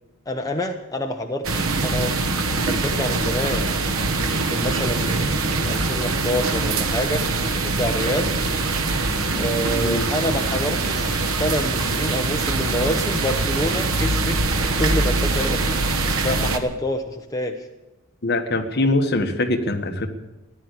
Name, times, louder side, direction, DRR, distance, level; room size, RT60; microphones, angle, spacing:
voice 1, 0.3-2.1 2.6-3.7 4.3-7.2 7.5-8.3 9.4-14.4 14.8-15.8 16.2-17.7, left 1 dB, 15° left, 3 dB, 0.9 m, -27 dB
sound 1, 1.4-16.6, right 3 dB, 80° right, 1.3 m, -23 dB
voice 2, 18.2-20.1, left 2 dB, 50° left, 6 dB, 1.4 m, -22 dB
15.0 x 10.5 x 8.3 m, 1.0 s
head